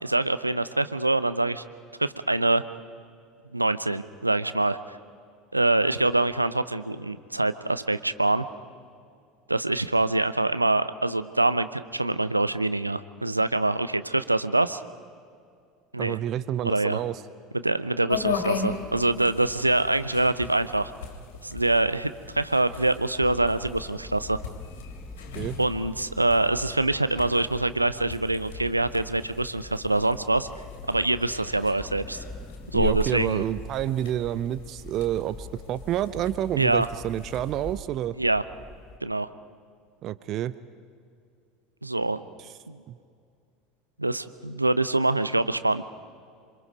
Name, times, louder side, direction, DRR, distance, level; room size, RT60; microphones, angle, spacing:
voice 1, 0.0-1.6 2.0-2.6 3.5-5.0 5.5-8.4 9.5-14.8 15.9-16.2 16.6-17.0 17.5-20.9 21.4-24.4 25.6-30.5 30.9-32.2 32.7-33.4 36.6-36.9 38.2-38.4 39.0-39.3 41.8-42.2 42.7-42.8 44.0-45.8, right 2 dB, 85° right, 13 dB, 0.6 m, -25 dB
voice 2, 16.0-17.2 25.3-25.6 32.7-38.2 40.0-40.5 42.9-43.0, right 12 dB, 45° right, 15 dB, 0.6 m, -29 dB
sound 1, 18.1-37.8, left 5 dB, 65° left, 3.2 m, -38 dB
sound 2, 23.2-39.0, left 1 dB, 15° left, 1.3 m, -46 dB
27.0 x 24.0 x 5.3 m, 2.2 s
figure-of-eight pair, 70°, 0 cm